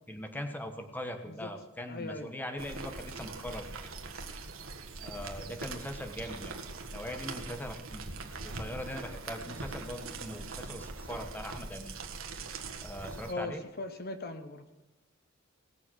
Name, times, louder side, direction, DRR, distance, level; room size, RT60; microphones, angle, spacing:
voice 1, 0.1-3.7 5.0-6.6 6.9-8.1 8.4-12.0 12.8-13.6, left 1 dB, 10° left, 6 dB, 1.3 m, -41 dB
voice 2, 1.9-2.3 13.3-14.6, left 2 dB, 50° left, 8 dB, 1.0 m, -39 dB
sound 1, 2.6-13.3, right 3 dB, 65° right, 1.5 m, -42 dB
19.0 x 7.0 x 6.3 m, 1.0 s
head